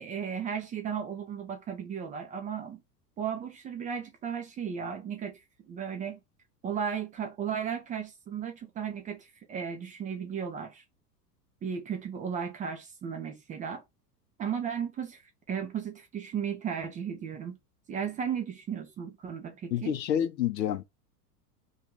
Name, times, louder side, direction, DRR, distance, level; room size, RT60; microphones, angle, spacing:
voice 1, 0.0-2.8 3.2-5.4 5.7-6.2 6.6-10.8 11.6-13.8 14.4-15.2 15.5-17.6 17.9-19.9, right 7 dB, 20° right, 0.4 m, -35 dB
voice 2, 19.7-20.8, left 10 dB, 85° left, 0.6 m, -28 dB
2.6 x 2.4 x 2.9 m
hypercardioid pair, 85°, 49 cm